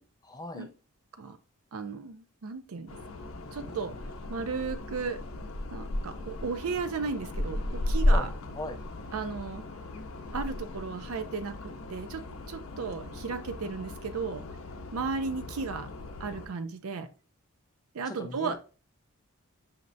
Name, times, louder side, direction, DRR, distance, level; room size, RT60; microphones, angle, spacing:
voice 1, 0.2-0.7 8.1-8.2 8.5-8.8 18.1-18.6, left 2 dB, 15° left, 5 dB, 0.4 m, -38 dB
voice 2, 1.7-2.9 3.5-3.9 4.3-5.2 5.7-8.3 9.1-9.6 10.3-12.2 12.5-14.4 14.9-15.9 16.2-17.1 17.9-18.6, right 4 dB, 75° right, 11 dB, 0.5 m, -35 dB
sound 1, 2.9-16.5, left 1 dB, 65° left, 0.6 m, -34 dB
5.8 x 3.1 x 2.6 m, 0.35 s
head